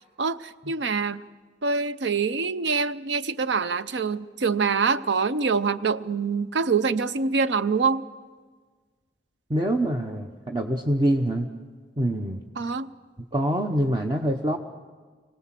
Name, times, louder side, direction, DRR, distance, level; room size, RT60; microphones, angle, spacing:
voice 1, 0.2-1.2 1.6-8.0 12.6-12.9, right 5 dB, 85° right, 14 dB, 0.6 m, -25 dB
voice 2, 9.5-11.5 12.0-12.4 13.3-14.6, right 1 dB, 25° right, 3 dB, 0.9 m, -25 dB
25.5 x 18.0 x 7.5 m, 1.5 s
head